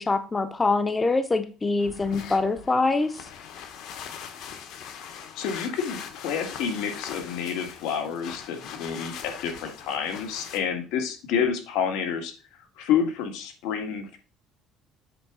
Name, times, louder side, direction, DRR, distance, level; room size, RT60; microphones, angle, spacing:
voice 1, 0.0-3.3, left 3 dB, 15° left, 10 dB, 0.6 m, -24 dB
sound 1, 1.8-10.6, left 8 dB, 65° left, 1.2 m, -41 dB
voice 2, 5.0-12.3 12.8-14.2, left 7 dB, 85° left, 5 dB, 1.8 m, -29 dB
7.9 x 3.6 x 6.1 m, 0.34 s
cardioid pair, 150°, 0 cm